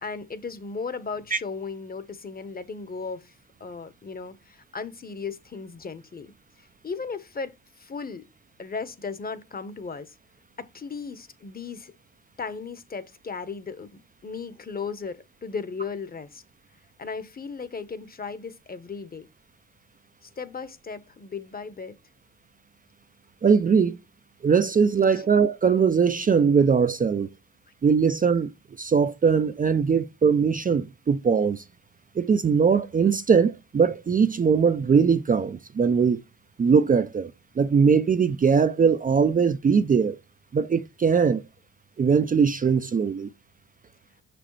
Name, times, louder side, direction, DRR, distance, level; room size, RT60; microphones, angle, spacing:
voice 1, 0.0-3.3 3.6-6.3 6.8-8.3 8.6-10.1 10.6-11.9 12.4-16.4 17.0-19.3 20.2-22.0 25.2-25.3, left 5 dB, 30° left, 1.0 m, -36 dB
voice 2, 23.4-24.0 24.4-27.3 27.8-28.5 28.8-31.6 32.2-36.2 36.6-37.3 37.6-40.2 40.5-41.4 42.0-43.3, right 6 dB, 30° right, 0.5 m, -21 dB
6.3 x 6.0 x 3.2 m
cardioid pair, 90°, 30 cm